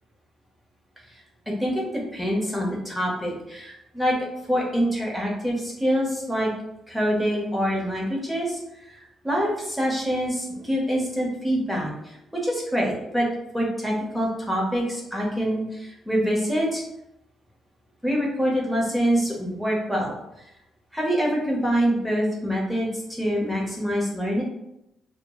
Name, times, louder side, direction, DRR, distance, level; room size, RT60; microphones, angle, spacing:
voice 1, 1.6-4.2 4.5-6.5 6.9-11.9 12.3-13.3 13.5-16.8 18.0-20.2 20.9-24.4, equal, ahead, -3 dB, 0.9 m, -25 dB
2.2 x 2.0 x 3.6 m, 0.84 s
cardioid pair, 90°, 0 cm